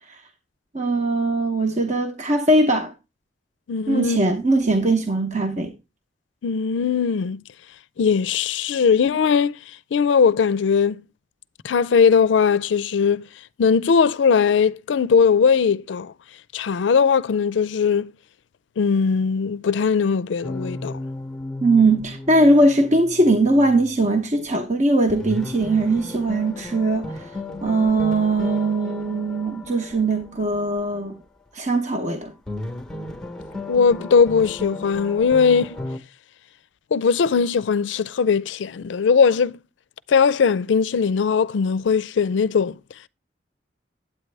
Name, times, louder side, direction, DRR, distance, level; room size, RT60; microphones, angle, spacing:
voice 1, 0.7-2.9 3.9-5.7 21.6-27.3 27.6-31.1 31.5-32.3, right 2 dB, 40° right, 0.9 m, -20 dB
voice 2, 3.7-4.2 6.4-7.4 8.0-9.6 9.9-11.0 11.6-13.3 13.6-16.1 16.5-18.1 18.8-21.0 33.7-35.8 36.9-39.6 40.1-42.8, left 6 dB, 80° left, 0.4 m, -19 dB
sound 1, 20.4-24.2 24.5-24.6 25.1-30.9 32.5-36.0, left 2 dB, 5° left, 0.8 m, -35 dB
8.9 x 8.6 x 3.3 m
head